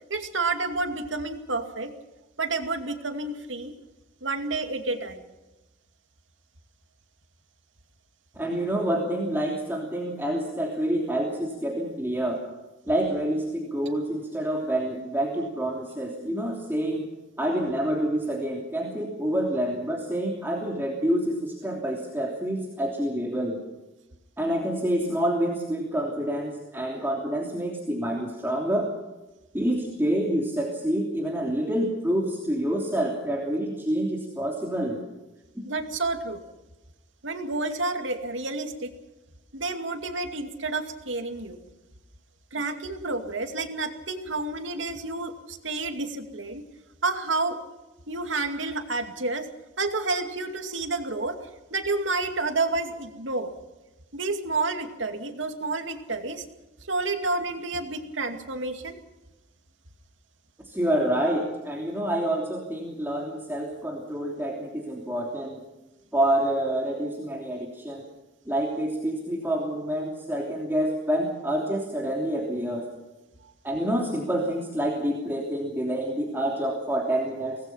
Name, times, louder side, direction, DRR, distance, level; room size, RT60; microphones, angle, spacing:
voice 1, 0.1-1.9 2.4-3.8 4.2-5.2 35.6-36.4 37.2-38.9 39.5-41.6 42.5-46.6 47.0-47.6 48.1-49.5 49.8-53.5 54.1-56.4 56.8-59.0 73.4-73.5, right 3 dB, 80° right, 6 dB, 2.4 m, -30 dB
voice 2, 8.4-12.4 12.8-17.1 17.4-23.6 24.4-28.9 29.5-35.0 60.6-65.6 66.1-68.0 68.5-72.9 73.6-77.6, right 1 dB, 10° right, -2 dB, 3.1 m, -27 dB
24.5 x 19.0 x 5.7 m, 1.1 s
head